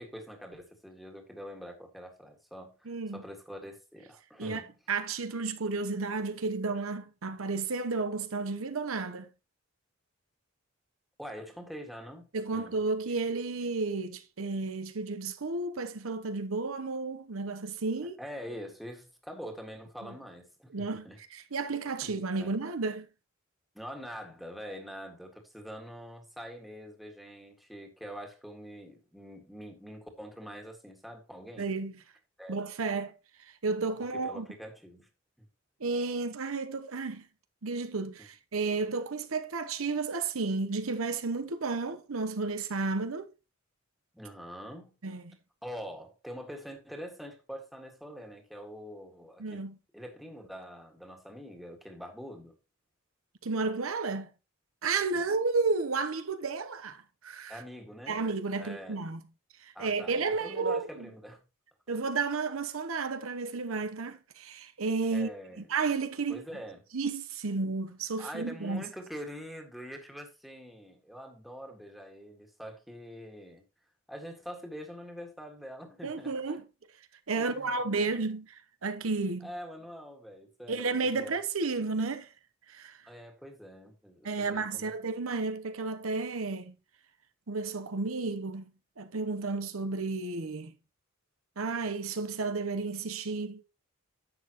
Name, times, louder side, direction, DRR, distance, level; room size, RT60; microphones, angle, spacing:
voice 1, 0.0-4.7 11.2-12.8 18.2-21.2 22.0-22.1 22.4-22.6 23.7-31.7 32.4-32.6 33.9-35.1 35.4-35.5 38.2-38.3 44.1-44.9 45.6-49.6 49.9-52.5 55.1-55.2 57.5-58.3 58.6-59.0 59.7-61.4 65.1-65.7 66.3-66.8 68.2-73.6 74.1-76.6 77.4-78.2 79.4-81.4 83.0-84.9, equal, ahead, 1.8 m, -45 dB
voice 2, 2.9-3.2 4.4-4.6 4.9-9.3 12.3-18.2 20.7-23.1 31.6-31.9 32.5-33.1 33.4-34.5 35.8-37.3 37.6-43.3 45.0-45.4 49.4-49.8 53.4-54.3 54.8-57.6 58.1-59.2 59.6-60.9 61.9-65.3 65.6-66.4 66.9-68.8 76.0-76.6 77.3-79.5 80.7-82.3 82.7-83.0 84.2-86.7 87.5-88.7 89.0-90.7 91.6-93.6, right 4 dB, 80° right, 0.9 m, -32 dB
11.0 x 7.7 x 3.0 m
head